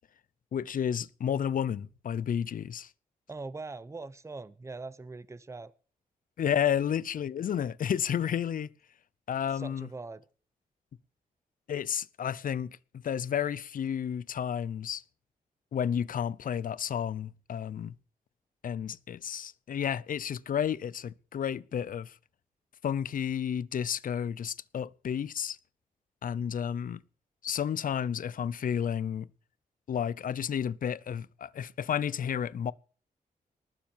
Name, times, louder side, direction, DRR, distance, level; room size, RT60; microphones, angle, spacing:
voice 1, 0.5-2.9 6.4-8.7 9.3-9.9 11.7-15.0 15.7-17.9 18.6-22.1 22.8-25.6 26.2-27.0 27.4-29.3 29.9-32.7, left 8 dB, 65° left, 0.7 m, -31 dB
voice 2, 3.3-5.7 9.5-10.3, right 3 dB, 20° right, 0.8 m, -42 dB
19.5 x 7.3 x 7.3 m
wide cardioid pair, 120°, 15 cm